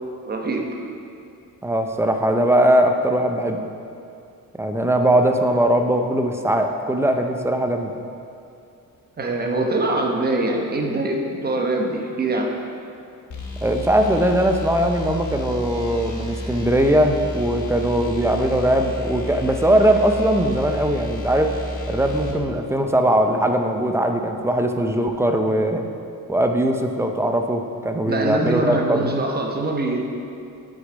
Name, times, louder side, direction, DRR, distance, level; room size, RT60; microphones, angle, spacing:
voice 1, 0.3-0.7 9.2-12.5 28.0-30.0, right 2 dB, 30° right, 1 dB, 0.9 m, -23 dB
voice 2, 1.6-3.6 4.6-7.9 13.6-21.5 21.9-25.8 26.3-29.1, right 1 dB, 10° right, 4 dB, 0.5 m, -20 dB
sound 1, 13.3-22.4, equal, 65° left, 1.4 m, -31 dB
7.8 x 6.3 x 5.1 m, 2.6 s
wide cardioid pair, 145°, 33 cm